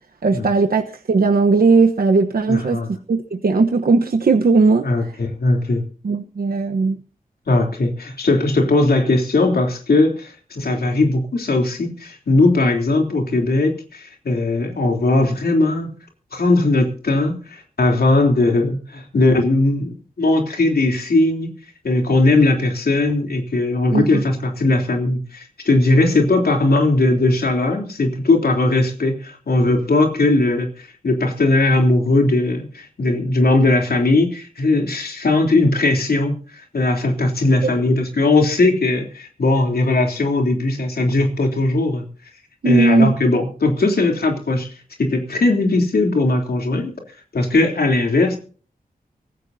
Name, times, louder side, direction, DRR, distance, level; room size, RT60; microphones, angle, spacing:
voice 1, 0.2-4.9 6.0-7.0 23.9-24.2 37.7-37.8 42.6-43.1, right 4 dB, 75° right, 6 dB, 1.1 m, -17 dB
voice 2, 2.5-2.9 4.8-5.8 7.5-15.9 16.3-21.5 21.8-42.0 42.6-44.7 45.0-46.9 47.3-48.4, left 2 dB, 90° left, 3 dB, 3.3 m, -18 dB
24.5 x 13.5 x 2.7 m, 0.42 s
wide cardioid pair, 75°, 15 cm